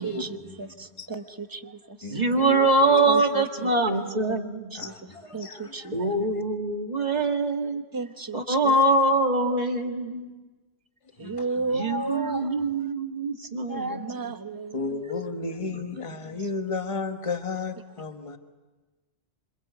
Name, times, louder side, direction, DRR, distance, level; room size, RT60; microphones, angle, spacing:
voice 1, 0.0-0.7 1.0-1.2 2.0-3.1 4.7-6.4 11.2-11.7 14.7-18.4, left 4 dB, 30° left, 6 dB, 1.4 m, -34 dB
voice 2, 0.6-2.2 3.1-3.7 4.3-4.4 4.7-4.9 5.3-5.9 7.9-8.7 11.2-12.5 13.7-14.8, right 3 dB, 20° right, 8 dB, 1.1 m, -33 dB
voice 3, 2.1-4.8 5.9-7.8 8.3-10.3 11.7-14.3 15.6-15.9, right 2 dB, 35° right, 3 dB, 2.2 m, -24 dB
27.0 x 26.5 x 8.2 m, 1.2 s
omnidirectional pair, 1.2 m